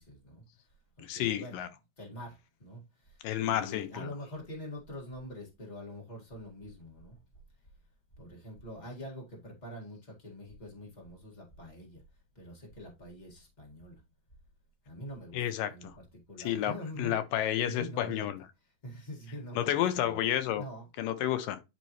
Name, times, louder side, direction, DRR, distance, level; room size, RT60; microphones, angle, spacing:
voice 1, 0.0-1.6 2.0-7.2 8.2-12.0 12.3-14.0 14.8-15.4 15.7-18.3 18.8-20.2 20.6-20.9, left 1 dB, 45° left, 0.5 m, -45 dB
voice 2, 1.0-1.7 3.2-4.1 15.3-15.9 16.4-18.4 19.6-20.6 21.0-21.6, left 11 dB, 80° left, 2.1 m, -31 dB
10.5 x 4.0 x 3.0 m
omnidirectional pair, 4.0 m